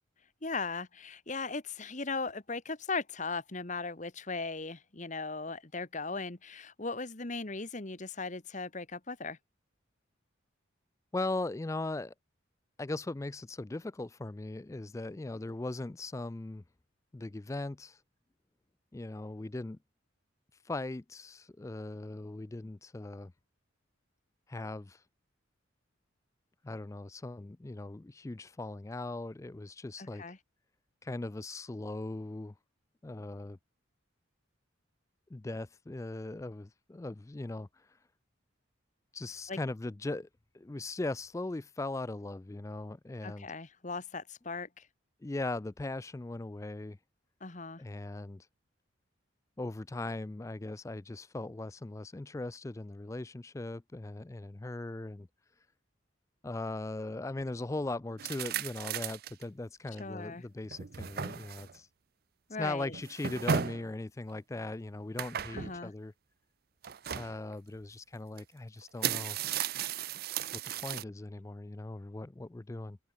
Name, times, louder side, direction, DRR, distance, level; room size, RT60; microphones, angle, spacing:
voice 1, 0.4-9.4 30.0-30.4 39.5-39.6 43.2-44.9 47.4-47.8 60.0-60.4 62.5-63.0 65.5-65.9, left 4 dB, 35° left, 1.4 m, -38 dB
voice 2, 11.1-12.1 12.8-16.6 17.1-18.0 18.9-19.8 20.7-23.3 24.5-25.0 26.6-30.2 31.0-32.5 33.0-33.6 35.3-37.7 39.1-40.3 40.5-43.5 45.2-47.0 47.8-48.5 49.6-55.3 56.4-61.9 62.6-66.1 67.1-69.4 70.5-73.0, left 2 dB, 15° left, 0.3 m, -39 dB
sound 1, 58.2-59.4 60.0-60.1 60.6-61.8 62.9-63.9 65.2-65.8 66.8-67.3 68.4-68.5 68.8-71.0, right 8 dB, 50° right, 0.5 m, -35 dB
head